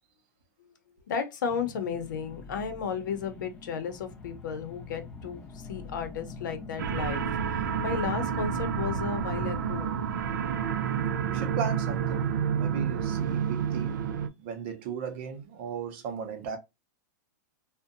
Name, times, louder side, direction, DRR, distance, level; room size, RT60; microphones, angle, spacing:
voice 1, 1.1-10.0, left 6 dB, 85° left, 0.7 m, -34 dB
sound 1, 1.4-9.8, left 4 dB, 15° left, 0.5 m, -46 dB
sound 2, 6.8-14.3, right 7 dB, 85° right, 0.4 m, -29 dB
voice 2, 11.3-12.3 12.6-14.0 14.4-16.6, right 6 dB, 35° right, 0.5 m, -36 dB
2.6 x 2.1 x 2.5 m
supercardioid pair, 175°, 10 cm